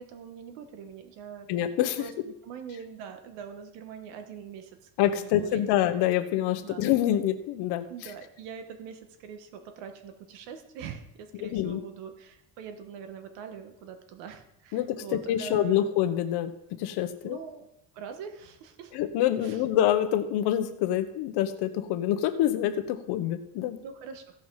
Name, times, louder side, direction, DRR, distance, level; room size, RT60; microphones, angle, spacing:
voice 1, 0.0-1.5 2.0-5.8 6.6-6.8 7.9-15.9 17.2-17.7 17.9-18.9 19.4-19.6 23.8-24.4, right 7 dB, 90° right, 7 dB, 1.6 m, -43 dB
voice 2, 1.5-2.1 5.0-7.9 11.4-11.8 14.7-16.5 16.8-17.4 18.9-23.8, left 11 dB, 70° left, 8 dB, 1.1 m, -26 dB
15.5 x 5.8 x 4.8 m, 0.82 s
cardioid pair, 155°, 41 cm